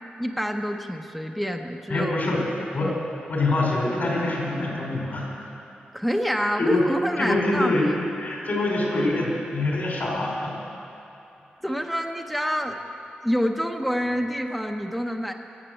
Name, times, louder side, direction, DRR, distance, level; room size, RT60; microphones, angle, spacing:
voice 1, 0.2-2.3 2.8-3.1 5.9-7.9 11.6-12.8 13.2-15.3, equal, ahead, 3 dB, 0.8 m, -27 dB
voice 2, 1.9-2.9 3.3-5.3 6.6-6.8 7.2-7.9 8.2-10.6, left 2 dB, 60° left, -2 dB, 4.3 m, -25 dB
17.0 x 8.0 x 7.8 m, 2.7 s
wide cardioid pair, 105°, 3 cm